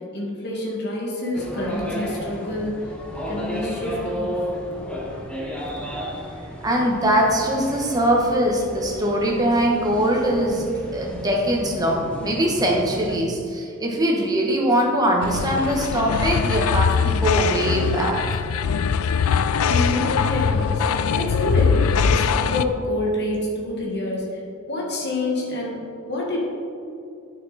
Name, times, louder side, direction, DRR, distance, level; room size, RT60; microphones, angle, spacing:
voice 1, 0.1-2.8 3.1-4.4 19.7-24.4 24.7-26.6, left 1 dB, 55° left, -3 dB, 1.7 m, -27 dB
sound 1, 1.3-13.2, equal, 5° left, 0.9 m, -33 dB
voice 2, 6.6-18.2, right 1 dB, 20° right, -1 dB, 1.3 m, -22 dB
sound 2, 15.2-22.6, left 6 dB, 80° left, 0.4 m, -21 dB
9.5 x 6.3 x 4.1 m, 2.4 s
head